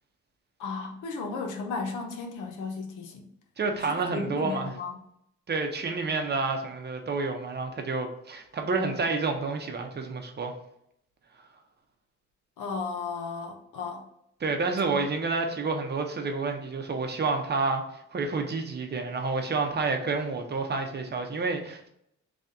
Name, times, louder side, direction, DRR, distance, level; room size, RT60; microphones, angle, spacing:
voice 1, 0.6-3.3 3.8-4.9 12.6-14.1 14.9-15.0, left 4 dB, 85° left, 2 dB, 0.8 m, -35 dB
voice 2, 3.6-4.7 5.5-10.5 14.4-21.9, right 4 dB, 35° right, 4 dB, 0.7 m, -29 dB
3.4 x 2.7 x 3.5 m, 0.75 s
cardioid pair, 90°, 30 cm